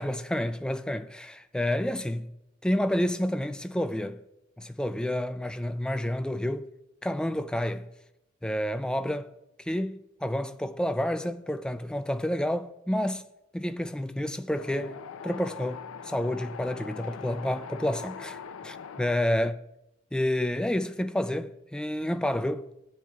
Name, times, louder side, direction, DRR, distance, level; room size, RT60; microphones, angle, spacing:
voice 1, 0.0-2.3 2.6-4.2 4.6-6.7 7.0-7.9 8.4-9.3 9.6-13.2 13.5-18.4 18.6-19.5 20.1-22.7, left 1 dB, 5° left, 0.3 m, -29 dB
Wind, 14.6-19.1, left 6 dB, 90° left, 0.4 m, -41 dB
16.5 x 7.4 x 2.4 m
head